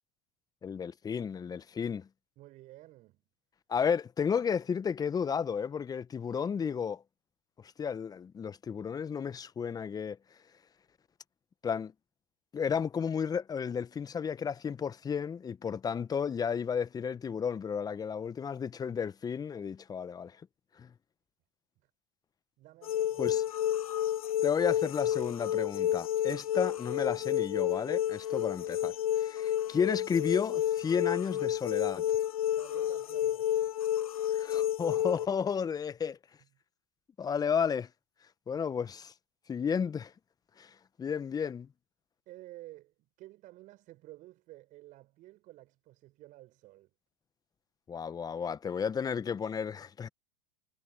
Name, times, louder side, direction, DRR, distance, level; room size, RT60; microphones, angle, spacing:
voice 1, 0.6-2.1 3.7-7.0 7.8-10.2 11.6-11.9 12.5-20.4 20.8-20.9 23.2-23.4 24.4-32.1 34.3-36.2 37.2-37.9 38.5-39.1 39.5-40.1 40.6-40.7 41.0-41.7 47.9-50.1, left 6 dB, 20° left, 1.2 m, -33 dB
voice 2, 2.4-3.2 21.8-21.9 22.6-23.7 28.4-28.6 32.5-33.8 42.3-46.9, right 17 dB, 45° right, 5.7 m, -52 dB
sound 1, 22.8-35.3, left 11 dB, 80° left, 0.7 m, -30 dB
hypercardioid pair, 95°, 18 cm